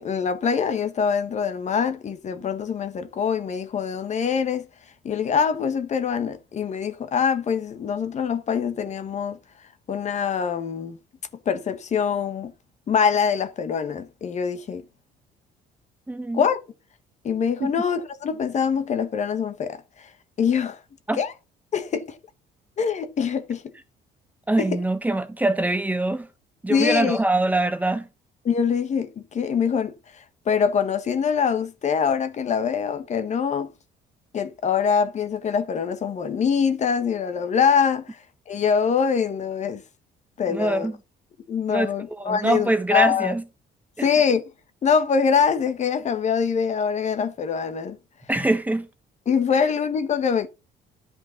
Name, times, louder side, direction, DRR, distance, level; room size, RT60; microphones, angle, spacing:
voice 1, 0.0-4.7 5.0-9.4 9.9-11.0 11.4-12.5 12.9-14.8 16.3-16.6 17.2-20.1 20.4-20.8 21.1-21.3 21.7-22.2 22.8-23.6 24.6-24.7 26.7-27.2 28.4-33.7 34.3-39.8 40.4-40.9 41.5-43.3 44.0-44.5 44.8-48.0 49.3-50.5, left 6 dB, 45° left, 1.3 m, -24 dB
voice 2, 16.1-16.4 17.6-17.7 21.1-21.2 24.5-26.3 26.6-28.1 40.5-40.9 41.7-41.9 42.2-43.4 44.0-44.1 48.3-48.9 49.5-49.6, right 2 dB, 10° right, 1.2 m, -23 dB
11.0 x 5.2 x 5.8 m
cardioid pair, 110°, 17 cm